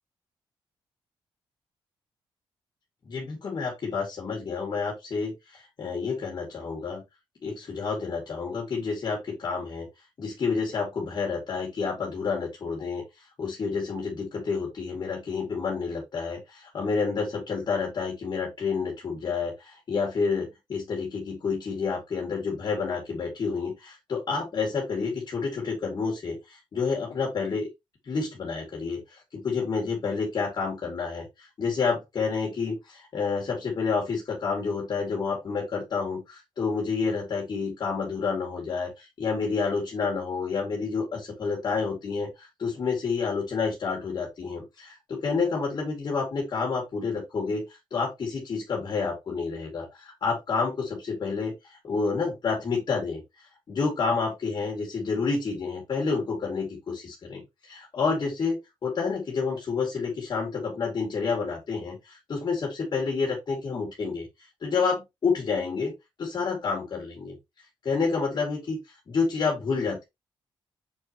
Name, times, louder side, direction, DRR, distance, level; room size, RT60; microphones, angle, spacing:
voice 1, 3.1-7.0 7.4-9.9 10.2-27.7 28.0-65.9 66.2-67.4 67.8-70.0, left 5 dB, 50° left, 0 dB, 2.5 m, -29 dB
7.0 x 4.7 x 3.0 m, 0.21 s
cardioid pair, 105°, 9 cm